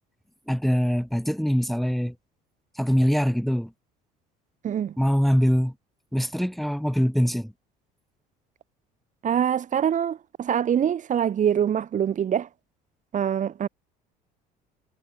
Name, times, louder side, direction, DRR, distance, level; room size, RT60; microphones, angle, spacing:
voice 1, 0.5-2.1 2.7-3.7 5.0-5.7 6.1-7.5, equal, ahead, 6.2 m, -23 dB
voice 2, 4.6-4.9 9.2-12.5 13.1-13.7, right 9 dB, 45° right, 7.9 m, -24 dB
supercardioid pair, 105°, 18 cm